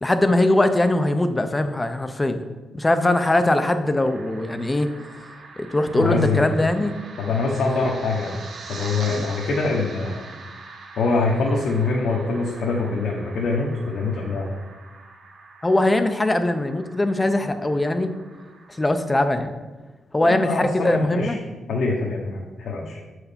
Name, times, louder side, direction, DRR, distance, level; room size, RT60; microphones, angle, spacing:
voice 1, 0.0-2.4 2.7-4.9 5.6-6.9 9.2-9.3 15.6-18.1 18.7-19.5 20.1-21.4 22.8-22.9, left 1 dB, 15° left, 8 dB, 0.5 m, -21 dB
sound 1, 4.0-19.3, right 3 dB, 65° right, 1.1 m, -43 dB
voice 2, 5.9-6.5 7.2-8.4 8.7-10.2 11.0-14.5 20.2-21.4 21.7-23.0, left 3 dB, 70° left, -3 dB, 1.1 m, -24 dB
7.3 x 4.8 x 5.1 m, 1.2 s
cardioid pair, 130°, 0 cm